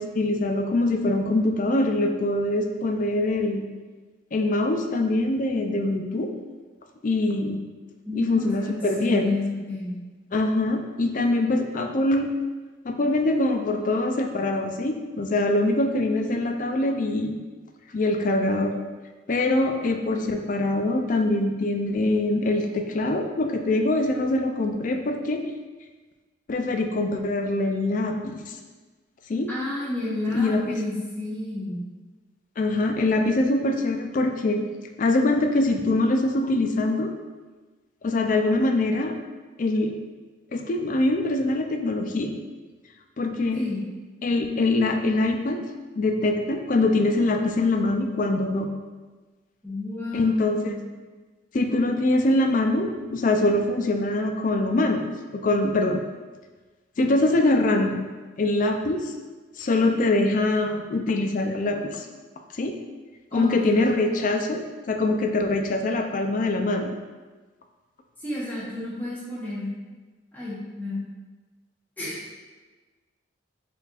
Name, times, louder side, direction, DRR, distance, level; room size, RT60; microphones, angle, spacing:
voice 1, 0.0-3.6 4.3-6.3 7.0-7.6 8.1-9.3 10.3-12.3 12.8-17.3 17.9-18.7 19.3-25.4 26.5-28.6 29.3-29.5 30.3-30.8 32.6-34.6 35.0-37.1 38.0-39.2 39.6-39.9 40.5-42.3 43.2-43.6 44.2-45.6 46.0-48.7 50.1-50.7 51.5-55.1 55.3-56.0 57.0-58.0 58.4-59.1 59.6-62.1 62.5-62.7 63.3-64.6 64.9-66.9, left 2 dB, 40° left, 5 dB, 0.3 m, -23 dB
voice 2, 8.0-10.0 29.5-31.8 43.5-43.8 49.6-50.8 63.3-63.7 68.2-69.7 70.3-71.0 72.0-72.4, left 2 dB, 10° left, -9 dB, 1.0 m, -31 dB
4.2 x 4.1 x 2.4 m, 1.3 s
head